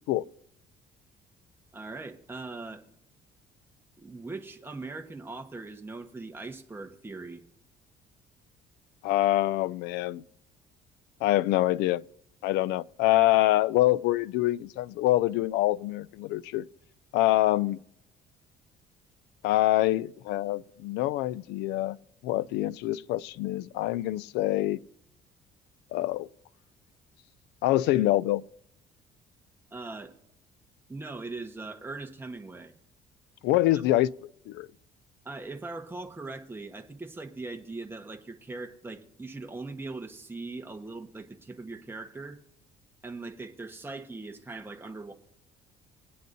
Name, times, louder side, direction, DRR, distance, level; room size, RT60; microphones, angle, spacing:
voice 1, 1.7-2.8 4.0-7.4 29.7-30.1 30.9-32.7 33.7-33.8 35.2-42.4 43.0-45.1, right 3 dB, 15° right, 1.2 m, -40 dB
voice 2, 9.0-10.2 11.2-12.0 12.4-16.6 17.1-17.8 19.4-22.0 22.2-24.8 25.9-26.3 27.6-28.4 33.4-34.1 34.5-34.7, left 16 dB, 90° left, 0.4 m, -25 dB
21.0 x 9.3 x 2.6 m
cardioid pair, 110°, 17 cm